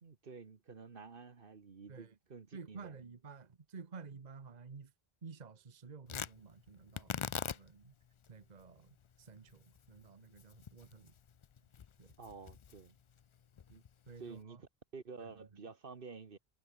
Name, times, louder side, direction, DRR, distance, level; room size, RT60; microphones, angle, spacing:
voice 1, 0.0-3.0 12.2-12.9 13.7-13.8 14.2-16.4, right 5 dB, 60° right, 1.5 m, -51 dB
voice 2, 2.5-4.9 5.2-7.9 8.3-11.1 12.0-12.1 14.1-14.6 15.2-15.6, right 5 dB, 45° right, 1.3 m, -52 dB
Tearing, 6.1-14.4, left 7 dB, 45° left, 0.4 m, -46 dB
omnidirectional pair, 1.0 m